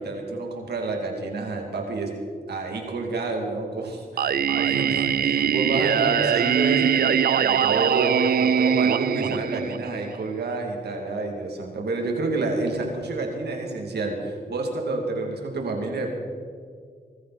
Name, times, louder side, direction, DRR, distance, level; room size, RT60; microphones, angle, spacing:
voice 1, 0.0-2.1 2.5-16.1, right 2 dB, 90° right, 1 dB, 2.8 m, -29 dB
Singing, 4.2-10.1, right 8 dB, 65° right, 0.4 m, -22 dB
20.0 x 14.5 x 4.4 m, 2.1 s
cardioid pair, 70°, 16 cm